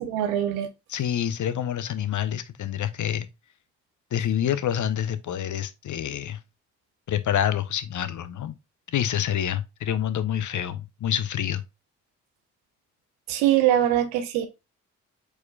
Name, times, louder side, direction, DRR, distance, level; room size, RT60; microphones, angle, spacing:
voice 1, 0.1-0.7 13.3-14.5, right 11 dB, 85° right, 0.7 m, -22 dB
voice 2, 0.9-3.3 4.1-6.4 7.1-8.5 8.9-11.6, left 10 dB, 50° left, 0.7 m, -27 dB
4.5 x 4.4 x 2.2 m
hypercardioid pair, 40°, 38 cm